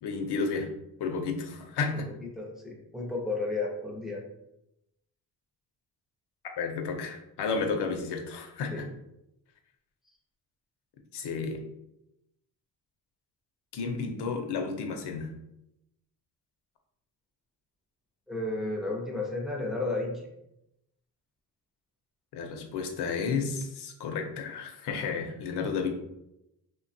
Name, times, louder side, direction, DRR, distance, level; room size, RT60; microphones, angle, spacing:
voice 1, 0.0-0.7 1.0-2.1 6.6-8.8 11.1-11.6 13.7-15.3 22.3-25.9, left 5 dB, 70° left, 4 dB, 0.6 m, -32 dB
voice 2, 1.9-4.2 8.7-8.8 18.3-20.2, left 2 dB, ahead, -2 dB, 0.5 m, -33 dB
3.3 x 2.2 x 2.6 m, 0.84 s
wide cardioid pair, 145°, 42 cm